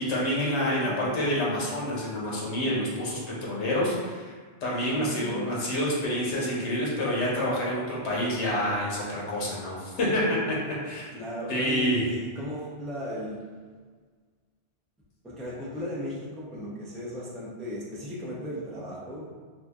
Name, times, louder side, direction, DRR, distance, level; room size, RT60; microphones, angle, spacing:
voice 1, 0.0-4.3 4.6-10.6 10.8-11.1 11.5-12.1, equal, 80° left, -5 dB, 1.0 m, -28 dB
voice 2, 0.8-1.2 4.7-5.6 11.1-13.4 15.2-19.3, equal, ahead, -7 dB, 0.3 m, -36 dB
2.8 x 2.4 x 3.4 m, 1.5 s
omnidirectional pair, 1.2 m